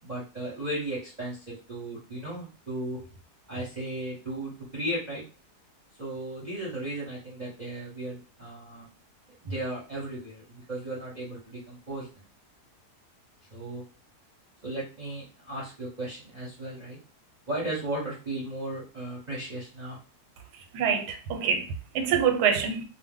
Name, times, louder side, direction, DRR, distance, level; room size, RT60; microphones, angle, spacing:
voice 1, 0.0-3.0 3.5-5.2 6.0-8.9 9.4-12.1 13.5-13.8 14.6-17.0 17.5-20.0, right 1 dB, 40° right, 0.6 m, -35 dB
voice 2, 20.7-22.8, right 7 dB, 90° right, 1.2 m, -26 dB
2.6 x 2.0 x 3.6 m
omnidirectional pair, 1.7 m